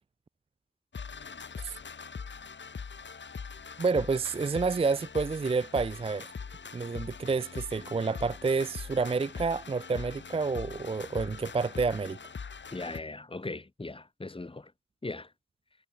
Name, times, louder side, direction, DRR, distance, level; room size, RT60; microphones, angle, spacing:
sound 1, 0.9-13.0, left 5 dB, 40° left, 5.6 m, -42 dB
voice 1, 3.8-6.3 6.7-12.2, right 4 dB, 20° right, 0.7 m, -29 dB
voice 2, 12.7-14.7 15.0-15.3, left 2 dB, 15° left, 6.9 m, -39 dB
cardioid pair, 90°, 30 cm